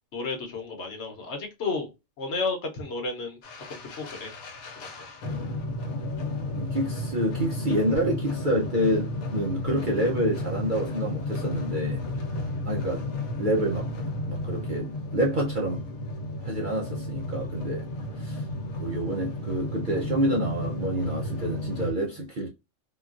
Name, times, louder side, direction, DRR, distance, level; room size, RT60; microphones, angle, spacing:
voice 1, 0.1-1.9 2.2-3.4 3.7-4.3 4.8-4.9, left 3 dB, 60° left, 1.0 m, -32 dB
sound 1, 3.4-21.9, left 1 dB, 85° left, 1.1 m, -33 dB
voice 2, 6.5-12.0 12.7-13.0 13.4-13.9 14.3-15.8 16.4-17.9 18.2-18.4 18.8-22.5, right 1 dB, 50° right, 0.6 m, -28 dB
3.8 x 2.3 x 2.4 m
omnidirectional pair, 1.4 m